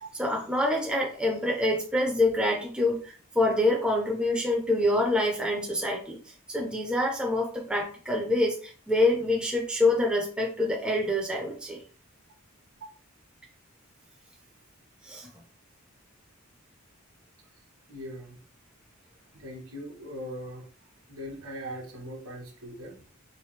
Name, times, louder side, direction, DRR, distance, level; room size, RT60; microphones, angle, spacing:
voice 1, 0.1-11.8 15.0-15.3, left 1 dB, 5° right, 0 dB, 0.4 m, -26 dB
voice 2, 17.9-18.4 19.3-20.6 21.1-23.1, equal, 70° right, 1 dB, 1.1 m, -40 dB
3.1 x 3.1 x 3.1 m, 0.42 s
head